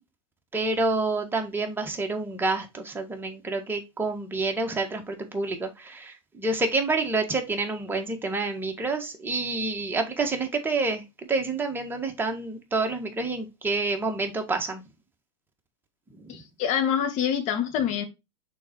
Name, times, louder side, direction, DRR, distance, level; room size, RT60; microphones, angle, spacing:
voice 1, 0.5-14.8 16.2-16.3, right 3 dB, 10° right, 1.8 m, -28 dB
voice 2, 16.3-18.1, left 8 dB, 45° left, 2.0 m, -26 dB
6.3 x 4.3 x 4.5 m
hypercardioid pair, 110°, 17 cm